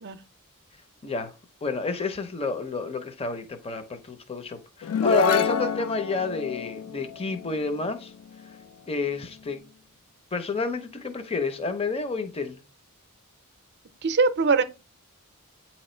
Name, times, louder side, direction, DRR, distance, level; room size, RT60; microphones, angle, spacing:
voice 1, 1.6-8.1 8.9-9.6 10.3-12.6, left 3 dB, 25° left, 0.6 m, -30 dB
sound 1, 4.8-8.4, left 6 dB, 75° left, 0.3 m, -27 dB
voice 2, 14.0-14.6, right 4 dB, 50° right, 0.5 m, -21 dB
8.5 x 3.0 x 4.3 m
head